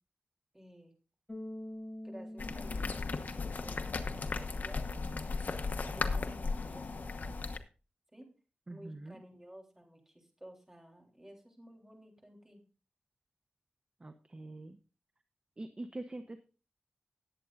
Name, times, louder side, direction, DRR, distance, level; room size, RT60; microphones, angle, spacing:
voice 1, 0.5-0.9 2.0-4.9 5.8-7.4 8.1-8.3 8.7-12.6, equal, 15° right, 1 dB, 3.5 m, -54 dB
Bass guitar, 1.3-4.4, left 1 dB, 20° left, 6.5 m, -46 dB
sound 1, 2.4-7.6, left 4 dB, 65° left, 1.1 m, -36 dB
voice 2, 8.7-9.1 14.0-14.8 15.6-16.4, right 2 dB, 30° right, 8 dB, 0.9 m, -44 dB
19.5 x 8.3 x 2.5 m, 0.33 s
wide cardioid pair, 90°, 3 cm